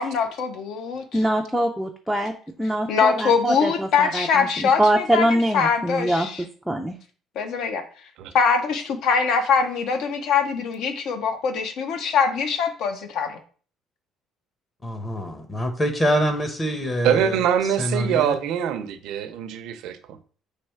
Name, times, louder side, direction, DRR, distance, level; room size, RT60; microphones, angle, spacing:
voice 1, 0.0-1.0 2.9-5.3 5.5-6.4 7.4-7.8 8.3-13.4, left 6 dB, 65° left, 0.7 m, -23 dB
voice 2, 1.1-2.3 2.6-7.0, right 1 dB, ahead, 0.4 m, -24 dB
voice 3, 14.8-17.4 17.8-18.3, equal, 20° left, 0.8 m, -25 dB
voice 4, 17.0-20.0, right 9 dB, 75° right, 0.6 m, -23 dB
3.3 x 3.1 x 4.5 m
cardioid pair, 140°, 0 cm